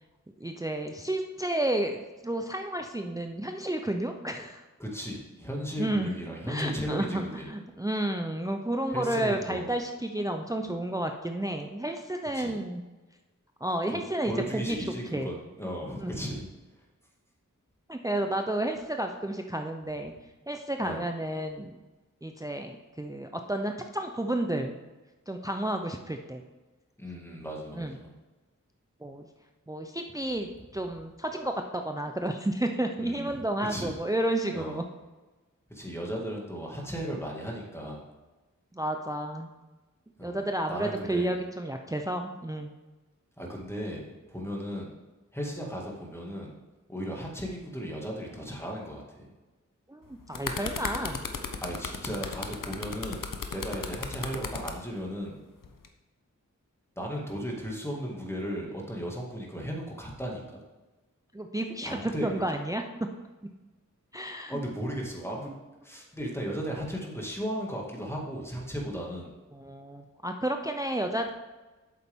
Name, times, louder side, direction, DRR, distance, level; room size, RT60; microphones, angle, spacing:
voice 1, 0.4-2.0 2.2-4.6 5.8-6.1 6.5-12.8 13.6-14.8 15.1-15.3 16.0-16.1 17.9-20.1 20.5-21.8 22.2-24.8 25.3-26.4 27.7-27.9 29.0-29.3 29.7-34.8 38.7-39.5 40.2-42.7 49.9-51.2 61.3-62.8 64.1-64.6 69.5-71.3, right 1 dB, 10° right, 4 dB, 0.6 m, -31 dB
voice 2, 4.8-7.5 8.9-9.7 12.3-12.6 13.9-16.5 20.8-21.1 27.0-28.1 33.0-33.4 33.7-34.0 34.5-34.8 35.7-38.1 40.2-40.4 40.7-41.4 43.4-44.9 45.3-46.5 46.9-49.3 51.6-55.4 57.0-60.6 61.8-62.4 64.5-65.5 65.8-69.3, equal, 10° left, -2 dB, 2.1 m, -36 dB
sound 1, 50.0-54.8 55.6-55.9, left 5 dB, 85° left, 0.8 m, -35 dB
8.3 x 7.0 x 3.6 m, 1.2 s
wide cardioid pair, 45°, 32 cm